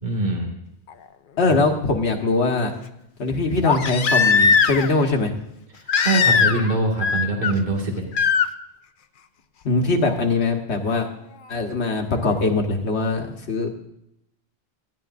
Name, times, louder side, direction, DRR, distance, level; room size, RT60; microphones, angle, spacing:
voice 1, 0.0-0.5 6.0-8.1, right 2 dB, 45° right, -1 dB, 2.2 m, -23 dB
Crying sobbing, 0.9-1.0 3.6-5.0 5.9-6.7 7.0-7.5 8.1-8.5 10.1-10.2, left 5 dB, 55° left, 0.7 m, -19 dB
voice 2, 1.4-2.7 3.2-5.3 9.6-11.1 11.5-13.7, left 3 dB, 80° left, 3 dB, 1.6 m, -22 dB
18.5 x 14.0 x 2.6 m, 0.81 s
omnidirectional pair, 1.1 m